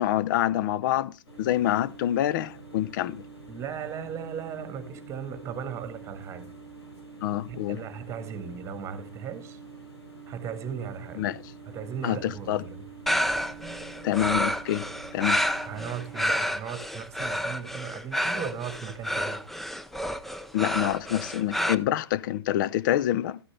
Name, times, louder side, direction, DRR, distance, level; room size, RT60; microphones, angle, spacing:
voice 1, 0.0-3.2 7.2-7.8 11.2-11.4 12.0-12.6 14.0-14.9 15.1-15.5 20.5-23.4, left 12 dB, 50° left, 0.6 m, -26 dB
sound 1, 1.3-16.2, right 4 dB, 80° left, 4.8 m, -46 dB
voice 2, 3.5-6.5 7.5-9.6 10.3-11.3 11.6-12.8 15.6-19.4, right 7 dB, 20° right, 1.6 m, -37 dB
sound 2, 13.1-21.7, equal, ahead, 0.5 m, -29 dB
13.0 x 9.8 x 3.3 m
hypercardioid pair, 115°, 14 cm